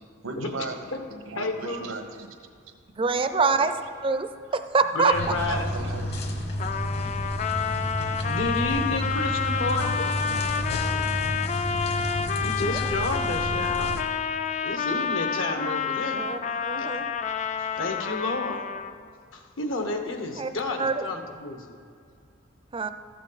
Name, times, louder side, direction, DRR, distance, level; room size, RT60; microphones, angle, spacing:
voice 1, 0.2-2.3 2.7-2.8 3.4-3.8 5.5-6.4 7.0-7.1, right 3 dB, 90° right, 5 dB, 1.2 m, -37 dB
voice 2, 1.4-1.8 4.9-5.7 8.3-10.2 11.5-11.7 12.4-14.0 14.6-16.3 16.8-16.9 17.6-18.7 19.3-21.8, left 2 dB, 75° left, 4 dB, 1.3 m, -31 dB
voice 3, 3.0-3.7 4.0-4.3 4.5-5.1 12.7-12.8 16.2-16.4 16.6-17.1 20.4-20.5 20.8-21.0 22.7-22.9, right 4 dB, 25° right, 9 dB, 0.4 m, -24 dB
sound 1, 5.1-14.0, equal, 55° left, 1.3 m, -30 dB
Trumpet, 6.6-19.0, left 6 dB, 35° left, 0.4 m, -29 dB
13.5 x 8.3 x 4.1 m, 2.2 s
head